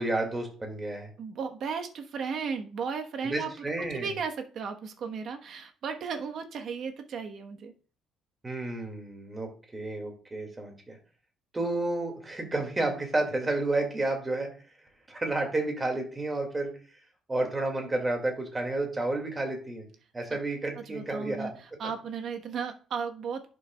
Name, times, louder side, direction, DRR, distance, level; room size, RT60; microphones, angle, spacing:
voice 1, 0.0-1.1 3.2-4.1 8.4-11.0 11.5-14.5 15.1-16.7 17.3-19.9 20.1-21.5, right 2 dB, 15° right, 3 dB, 2.0 m, -31 dB
voice 2, 1.2-3.5 3.9-7.7 20.9-21.5 21.8-23.5, right 5 dB, 55° right, 5 dB, 1.1 m, -35 dB
11.0 x 6.6 x 2.3 m, 0.40 s
cardioid pair, 150°, 0 cm